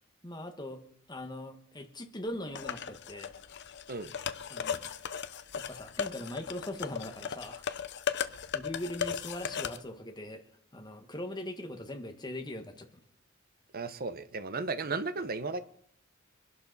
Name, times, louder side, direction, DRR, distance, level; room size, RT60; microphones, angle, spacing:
voice 1, 0.2-0.8 1.1-3.3 4.5-4.8 5.6-7.6 8.5-10.4 10.7-13.0, left 1 dB, 20° left, 1.6 m, -40 dB
sound 1, 2.6-9.8, left 7 dB, 55° left, 0.7 m, -37 dB
voice 2, 13.7-15.6, right 3 dB, 45° right, 0.9 m, -34 dB
23.0 x 11.5 x 4.1 m
head